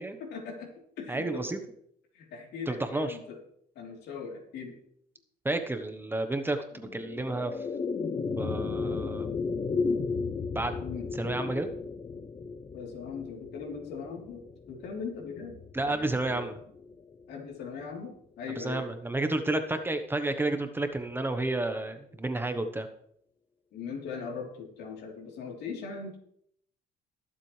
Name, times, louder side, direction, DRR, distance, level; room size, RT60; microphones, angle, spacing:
voice 1, 0.2-1.5 2.1-3.4 3.8-4.7 10.8-11.1 12.7-14.4 14.7-16.5 17.3-18.8 23.7-26.2, left 5 dB, 75° left, 0 dB, 3.5 m, -40 dB
voice 2, 1.1-1.6 2.7-3.2 5.4-7.5 8.4-9.3 10.5-10.8 11.1-11.7 15.7-16.6 18.6-22.9, right 2 dB, 10° right, 7 dB, 1.1 m, -31 dB
sound 1, 6.7-17.2, left 4 dB, 30° left, 0.7 m, -35 dB
21.0 x 7.5 x 3.3 m, 0.69 s
cardioid pair, 110°, 17 cm